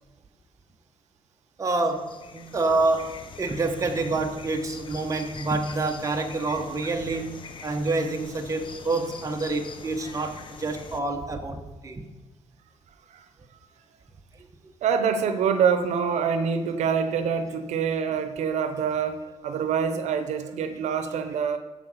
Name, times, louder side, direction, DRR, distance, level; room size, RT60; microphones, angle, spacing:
sound 1, 1.6-11.0, left 5 dB, 45° left, 0.9 m, -43 dB
voice 1, 1.6-12.0, right 3 dB, 25° right, 1.2 m, -27 dB
voice 2, 14.8-21.6, right 6 dB, 85° right, 0.8 m, -25 dB
13.5 x 4.9 x 5.7 m
cardioid pair, 120°, 12 cm